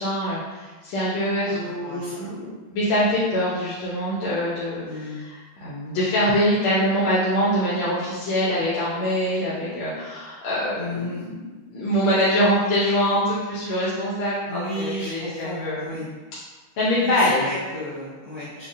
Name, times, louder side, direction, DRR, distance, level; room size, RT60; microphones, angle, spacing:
voice 1, 0.0-11.4 11.7-15.9 16.8-17.5, equal, 90° left, -8 dB, 1.6 m, -24 dB
voice 2, 1.5-2.2 4.8-5.2 10.8-11.2 14.5-16.1 17.0-18.7, left 1 dB, 40° left, -13 dB, 0.9 m, -33 dB
5.1 x 2.4 x 2.5 m, 1.3 s
omnidirectional pair, 2.3 m